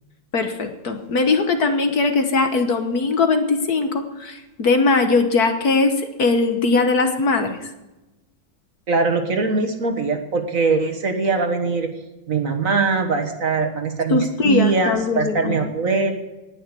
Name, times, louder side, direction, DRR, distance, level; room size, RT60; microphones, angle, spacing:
voice 1, 0.3-7.6 14.1-15.7, left 3 dB, 55° left, 7 dB, 1.6 m, -20 dB
voice 2, 8.9-11.9 12.3-16.1, right 4 dB, 45° right, 5 dB, 1.7 m, -21 dB
19.0 x 6.6 x 8.3 m, 1.1 s
omnidirectional pair, 2.1 m